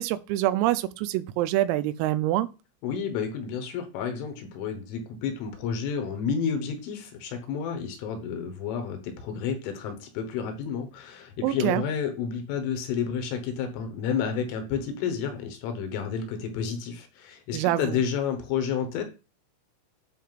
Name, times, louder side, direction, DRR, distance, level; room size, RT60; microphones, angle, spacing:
voice 1, 0.0-2.5 11.4-11.8 17.5-18.0, right 14 dB, 90° right, 3.3 m, -25 dB
voice 2, 2.8-19.0, left 7 dB, 75° left, 3.6 m, -30 dB
12.5 x 5.7 x 2.5 m
omnidirectional pair, 5.9 m